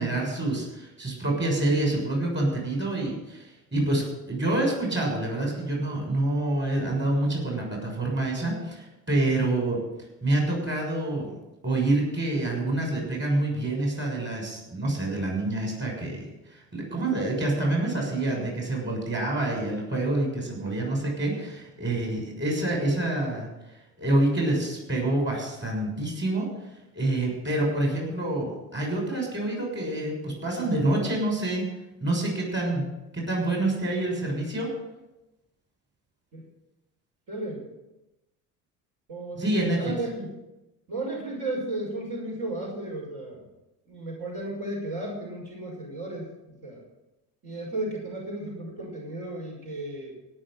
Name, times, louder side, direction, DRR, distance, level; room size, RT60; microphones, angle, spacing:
voice 1, 0.0-9.8 10.2-11.3 11.6-23.5 24.0-26.5 26.9-31.6 32.0-32.9 33.1-34.7 39.3-39.9, right 2 dB, 25° right, 0 dB, 6.7 m, -27 dB
voice 2, 37.3-37.6 39.1-40.3 40.9-43.4 43.9-46.3 46.6-46.8 47.4-50.1, right 2 dB, 50° right, -3 dB, 6.1 m, -34 dB
17.5 x 6.6 x 7.8 m, 0.97 s
hypercardioid pair, 70°, 47 cm